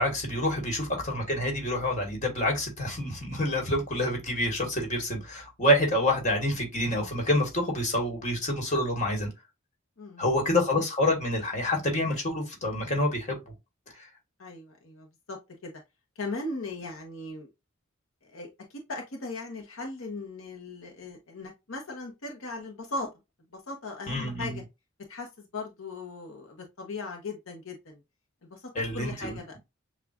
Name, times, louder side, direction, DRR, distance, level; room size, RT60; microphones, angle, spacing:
voice 1, 0.0-9.3 10.2-13.4 24.1-24.5 28.7-29.4, left 1 dB, 35° left, 1.6 m, -27 dB
voice 2, 14.4-15.7 16.2-17.5 18.2-23.1 23.5-24.6 25.1-28.0 28.5-29.5, left 3 dB, 75° left, 0.9 m, -38 dB
6.9 x 2.4 x 2.4 m
head